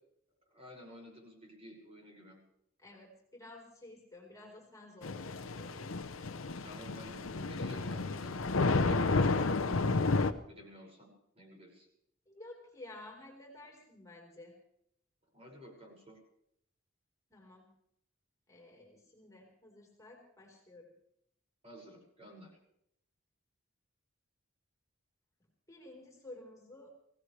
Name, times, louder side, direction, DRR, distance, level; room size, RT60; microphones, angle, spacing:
voice 1, 0.5-2.4 6.6-11.9 15.3-16.2 21.6-22.6, equal, 30° right, -2 dB, 6.0 m, -52 dB
voice 2, 2.8-5.9 12.3-14.5 17.3-17.7 18.5-20.9 25.7-26.9, left 2 dB, 15° left, -1 dB, 4.5 m, -52 dB
Thunder / Rain, 5.0-10.3, left 3 dB, 90° left, 0.9 m, -31 dB
24.5 x 17.5 x 3.4 m, 0.73 s
head